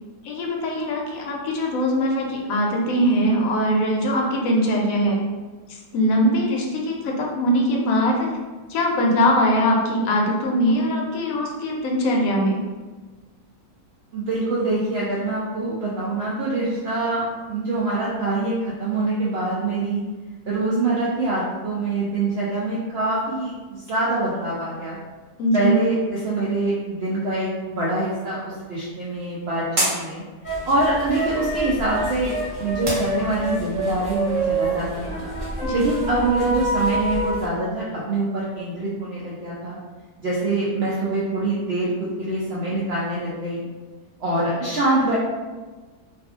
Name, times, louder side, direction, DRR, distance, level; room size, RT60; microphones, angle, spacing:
voice 1, 0.2-5.2 5.9-8.4 8.7-12.6 25.4-25.7 35.6-35.8, equal, 70° left, -1 dB, 1.0 m, -21 dB
voice 2, 14.1-20.0 20.5-25.0 25.5-30.2 30.7-35.3 35.7-39.8 40.2-43.6 44.2-45.2, right 2 dB, 75° right, -7 dB, 0.5 m, -25 dB
sound 1, 28.2-33.7, right 1 dB, 45° right, 0.7 m, -33 dB
sound 2, 30.4-37.4, right 1 dB, 5° right, 1.2 m, -27 dB
2.5 x 2.4 x 2.4 m, 1.3 s
omnidirectional pair, 1.6 m